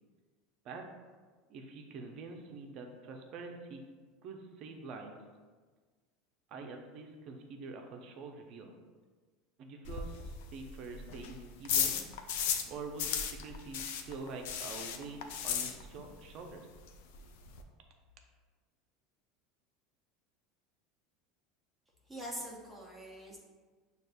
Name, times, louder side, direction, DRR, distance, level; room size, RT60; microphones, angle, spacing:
voice 1, 1.5-3.8 4.2-5.2 6.5-8.8 9.6-12.1 12.7-16.7, right 3 dB, 55° right, 3 dB, 0.6 m, -46 dB
sound 1, 9.8-12.7 13.0-16.2 16.4-16.5 16.9-17.0 17.1-17.6, left 8 dB, 75° left, 0.4 m, -35 dB
voice 2, 22.1-23.4, equal, 10° right, -4 dB, 0.6 m, -43 dB
6.3 x 2.4 x 2.3 m, 1.4 s
supercardioid pair, 110°, 0 cm